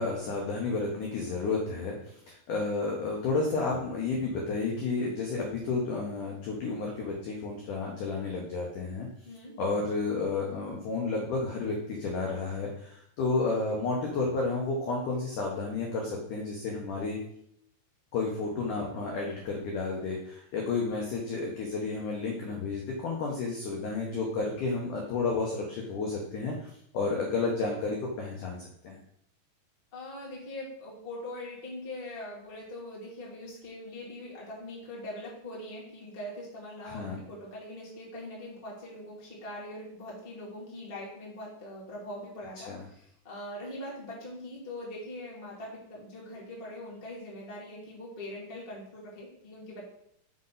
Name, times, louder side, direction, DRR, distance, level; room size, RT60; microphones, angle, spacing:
voice 1, 0.0-9.1 9.6-17.2 18.1-26.7 26.9-29.0 36.8-37.2 42.7-42.8, left 3 dB, 85° left, -1 dB, 1.7 m, -31 dB
voice 2, 9.2-9.5 29.9-49.8, left 1 dB, 35° left, -5 dB, 0.9 m, -42 dB
6.4 x 4.0 x 5.6 m, 0.71 s
omnidirectional pair, 5.1 m